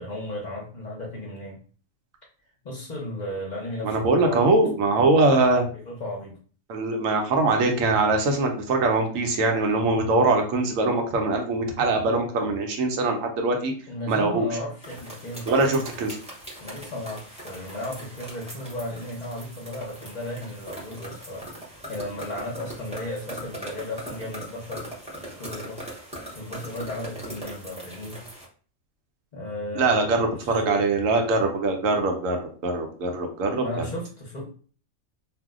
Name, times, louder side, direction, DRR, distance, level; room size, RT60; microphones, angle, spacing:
voice 1, 0.0-1.6 2.6-4.6 5.0-5.2 5.7-6.4 13.9-15.9 16.6-24.9 25.2-25.8 26.3-28.2 29.3-30.8 33.6-34.4, left 1 dB, 40° left, -2 dB, 0.7 m, -35 dB
voice 2, 3.8-5.7 6.7-13.7 14.1-14.5 15.5-16.2 29.8-32.4 32.6-33.6, right 3 dB, 80° right, 3 dB, 1.1 m, -22 dB
sound 1, 14.8-28.5, right 1 dB, 5° right, 0.6 m, -40 dB
2.6 x 2.1 x 3.6 m, 0.42 s
omnidirectional pair, 1.4 m